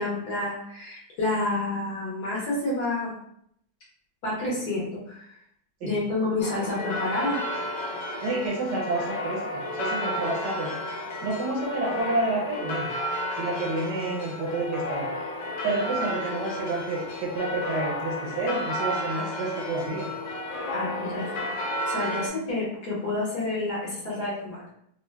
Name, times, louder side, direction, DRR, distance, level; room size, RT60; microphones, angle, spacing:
voice 1, 0.0-3.1 4.2-5.2 5.8-7.4 20.7-24.7, left 2 dB, 60° left, -6 dB, 1.2 m, -29 dB
sound 1, 6.4-22.3, left 1 dB, 85° left, 1.4 m, -32 dB
voice 2, 8.2-10.7 11.2-12.9 13.4-15.3 15.6-20.1, right 2 dB, 70° right, -3 dB, 1.1 m, -29 dB
3.8 x 2.0 x 2.2 m, 0.71 s
omnidirectional pair, 2.2 m